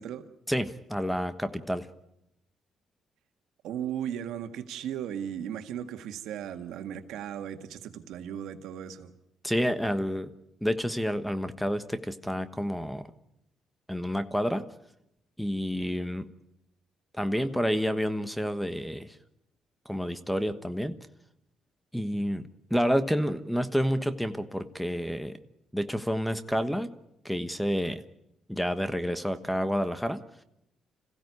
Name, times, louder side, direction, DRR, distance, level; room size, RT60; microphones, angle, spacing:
voice 1, 0.5-1.9 9.4-10.3 10.6-13.1 13.9-14.6 15.4-16.3 17.1-19.2 19.8-21.0 21.9-25.4 25.7-26.9 27.2-28.0 28.5-30.2, equal, ahead, 11 dB, 1.3 m, -29 dB
voice 2, 3.6-9.1, right 9 dB, 85° right, 8 dB, 1.8 m, -36 dB
26.5 x 16.0 x 9.6 m, 0.85 s
cardioid pair, 90°, 0 cm